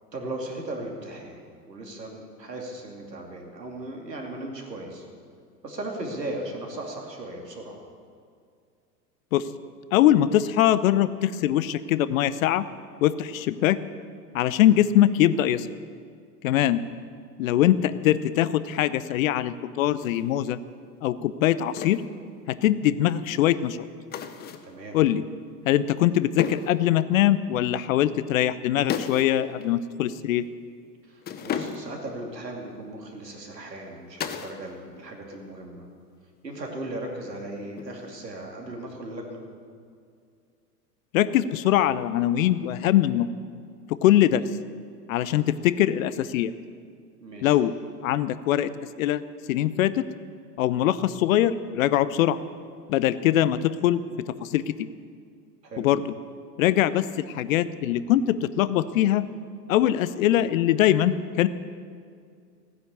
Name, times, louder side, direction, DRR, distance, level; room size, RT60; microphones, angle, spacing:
voice 1, 0.1-1.4 1.7-5.1 5.6-7.8 16.4-16.7 24.6-25.0 31.1-35.9 36.4-39.4 47.2-47.6 55.6-55.9, right 1 dB, 85° right, 1 dB, 2.7 m, -37 dB
voice 2, 9.9-12.6 13.0-13.8 14.3-15.7 16.4-16.8 17.4-20.6 21.0-22.0 22.5-23.8 24.9-25.2 25.6-30.5 41.1-43.3 44.0-44.4 45.1-46.5 47.4-47.7 48.0-48.7 49.0-49.2 49.5-50.0 50.6-52.4 52.9-54.0 54.4-54.9 55.8-56.0 56.6-59.2 59.7-61.5, left 12 dB, 55° left, 15 dB, 0.8 m, -22 dB
sound 1, 20.0-20.2 21.8-22.1 24.1-24.7 26.4-26.8 28.9-29.3 29.6-29.7 31.2-32.1 34.2-34.6 34.9-35.4 37.8-38.2, left 8 dB, 20° left, 0.7 m, -33 dB
16.0 x 9.7 x 7.0 m, 2.2 s
figure-of-eight pair, 95°, 48 cm